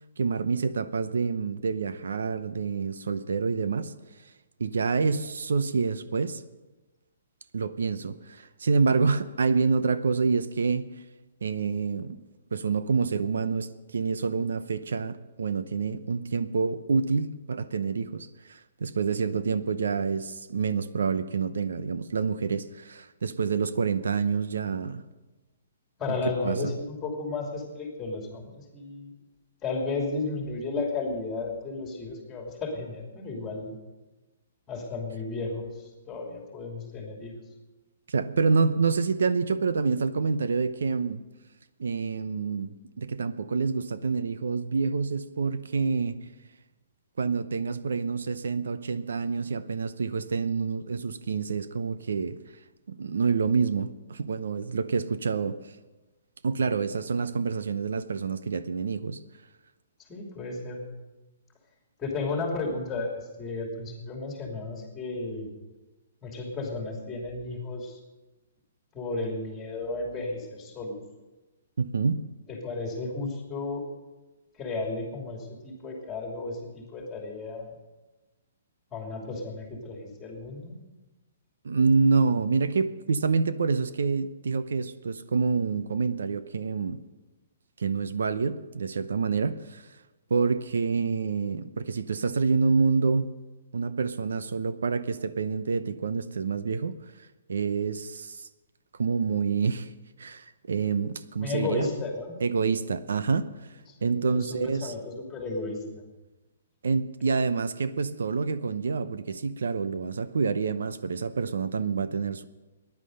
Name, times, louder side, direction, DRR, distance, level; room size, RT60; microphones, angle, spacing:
voice 1, 0.2-3.9 4.6-6.4 7.5-10.9 11.4-12.2 12.5-25.0 26.4-26.6 38.1-41.2 41.8-46.1 47.2-52.4 52.9-55.6 56.4-59.2 71.8-72.3 81.6-87.0 87.8-89.8 90.3-93.3 93.7-97.0 97.5-98.5 99.0-99.9 100.2-101.9 102.4-103.5 104.0-104.9 106.8-112.4, right 5 dB, 90° right, 13 dB, 0.8 m, -27 dB
voice 2, 26.0-29.1 29.6-33.7 34.7-37.3 60.1-60.8 62.0-65.5 66.2-68.0 68.9-71.0 72.5-73.8 74.5-77.8 78.9-80.7 101.4-102.4 103.9-106.0, left 3 dB, 10° left, 1 dB, 2.8 m, -33 dB
15.0 x 10.5 x 6.5 m, 1.1 s
hypercardioid pair, 170°, 0 cm